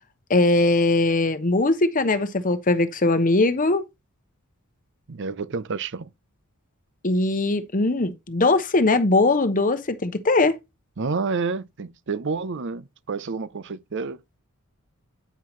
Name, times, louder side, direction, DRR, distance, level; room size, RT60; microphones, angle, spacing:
voice 1, 0.3-3.8 7.0-10.6, left 2 dB, 35° left, 1.0 m, -20 dB
voice 2, 5.1-6.1 11.0-14.2, right 4 dB, 55° right, 0.6 m, -29 dB
9.3 x 5.6 x 3.1 m
head